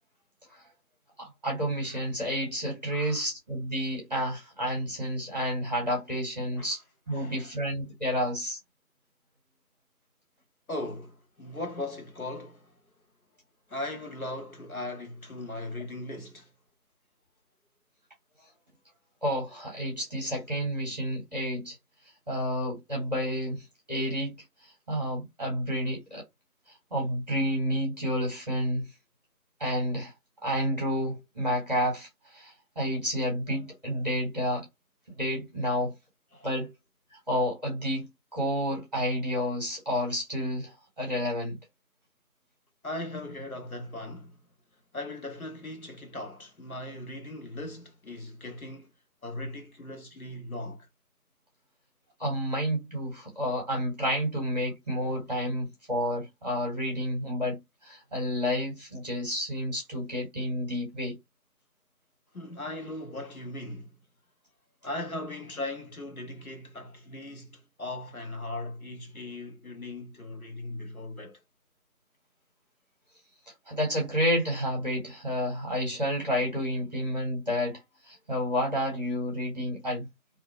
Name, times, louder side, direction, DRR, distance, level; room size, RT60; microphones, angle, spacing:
voice 1, 1.2-6.8 7.1-8.6 19.2-21.8 22.3-24.4 24.9-26.2 26.9-28.9 29.6-30.1 30.4-34.7 35.2-35.9 36.4-36.7 37.1-41.6 52.2-61.2 73.7-80.1, equal, 25° right, 1.4 m, -30 dB
voice 2, 2.9-3.3 6.6-6.8 7.1-7.5 10.7-12.8 13.7-16.5 36.3-36.5 42.8-44.4 44.9-48.9 49.2-50.9 62.3-64.0 64.8-71.4, left 2 dB, 60° left, 0.9 m, -38 dB
2.7 x 2.5 x 3.0 m
figure-of-eight pair, 170°, 48 cm